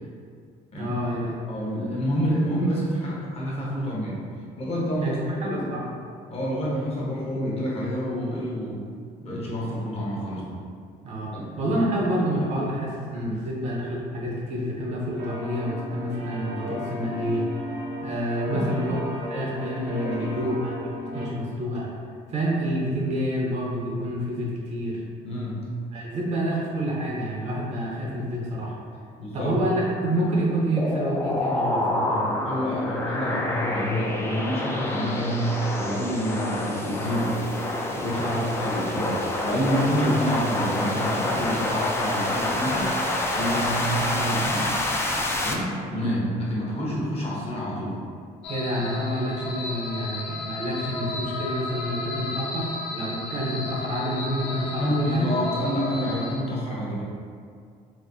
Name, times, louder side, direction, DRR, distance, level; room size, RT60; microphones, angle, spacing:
voice 1, 0.8-1.4 5.0-5.8 11.0-17.5 18.0-19.0 19.3-20.7 21.1-21.9 22.3-25.0 25.9-28.7 29.3-32.3 38.2-38.5 48.5-55.3, right 1 dB, 40° right, -4 dB, 0.6 m, -28 dB
voice 2, 1.5-4.2 4.6-5.2 5.5-5.7 6.3-8.8 9.2-10.5 11.3-11.7 13.2-13.4 18.5-18.9 20.0-20.5 25.2-25.6 29.2-29.7 32.4-37.4 37.9-42.9 43.3-44.7 45.4-47.9 54.8-57.0, equal, 35° left, -5 dB, 0.9 m, -28 dB
sound 1, 15.2-21.3, left 1 dB, 85° right, 0.7 m, -34 dB
sound 2, 30.8-45.5, left 1 dB, 15° left, 0.3 m, -27 dB
sound 3, 48.4-56.4, left 2 dB, 85° left, 0.5 m, -34 dB
4.1 x 2.1 x 2.6 m, 2.2 s
cardioid pair, 110°, 17 cm